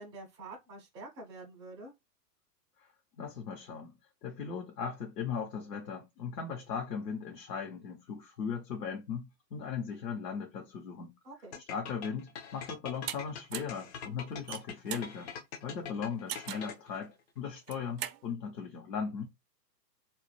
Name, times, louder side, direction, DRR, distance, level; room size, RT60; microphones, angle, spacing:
voice 1, 0.0-1.9 11.2-11.6, right 2 dB, 10° right, 0.4 m, -47 dB
voice 2, 3.2-4.0 4.2-11.1 11.7-15.3 15.6-19.3, left 6 dB, 70° left, 0.9 m, -38 dB
sound 1, 11.5-17.1, left 7 dB, 45° left, 0.5 m, -44 dB
sound 2, 13.1-13.2 13.5-13.8 14.3-15.1 16.3-16.7 17.6-18.2, right 11 dB, 65° right, 0.5 m, -39 dB
2.3 x 2.0 x 3.0 m
hypercardioid pair, 115°, 49 cm